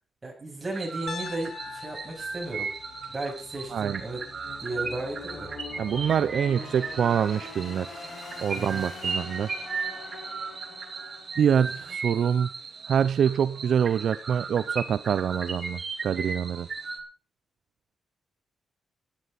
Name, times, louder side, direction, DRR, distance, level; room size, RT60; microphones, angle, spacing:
voice 1, 0.2-2.7 3.1-4.2 4.6-5.5 8.5-8.8, right 2 dB, 20° right, -1 dB, 7.8 m, -35 dB
sound 1, 0.7-17.0, right 4 dB, 40° right, 2.9 m, -36 dB
Piano, 1.1-5.1, left 7 dB, 55° left, 1.3 m, -44 dB
sound 2, 1.2-12.2, left 3 dB, 35° left, 6.0 m, -44 dB
voice 2, 3.7-4.0 5.8-7.9 8.4-9.5 11.4-12.5 12.8-16.7, right 8 dB, 65° right, 14 dB, 0.6 m, -25 dB
17.0 x 11.5 x 4.1 m, 0.35 s
cardioid pair, 115°, 0 cm